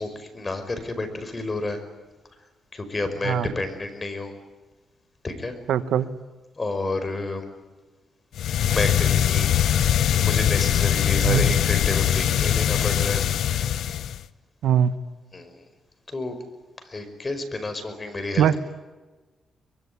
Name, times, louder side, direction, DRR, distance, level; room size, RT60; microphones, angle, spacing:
voice 1, 0.0-1.8 2.7-4.3 5.2-5.5 6.6-7.4 8.6-9.5 10.2-13.2 15.3-15.6 16.1-16.4 16.8-18.6, left 2 dB, 30° left, 8 dB, 5.3 m, -30 dB
voice 2, 5.7-6.1 11.2-11.4 14.6-14.9 18.4-18.5, right 9 dB, 90° right, 12 dB, 1.2 m, -20 dB
sound 1, 8.3-14.3, left 10 dB, 80° left, 0.8 m, -22 dB
24.0 x 23.0 x 9.7 m, 1.2 s
cardioid pair, 90°, 0 cm